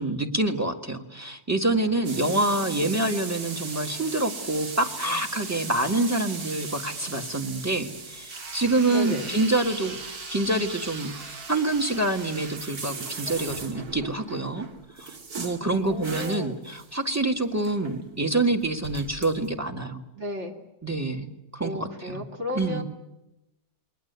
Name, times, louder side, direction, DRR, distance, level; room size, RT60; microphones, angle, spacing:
voice 1, 0.0-14.7 15.0-20.0 20.8-22.3 22.5-22.8, right 2 dB, 10° right, 7 dB, 1.8 m, -27 dB
sound 1, 2.0-17.2 17.5-18.0 18.6-19.5, right 4 dB, 70° right, 2.5 m, -38 dB
voice 2, 2.2-3.0 8.9-9.3 15.6-16.6 20.1-20.5 21.6-22.8, left 1 dB, 45° right, 3 dB, 3.1 m, -34 dB
28.5 x 22.0 x 8.2 m, 0.92 s
omnidirectional pair, 1.7 m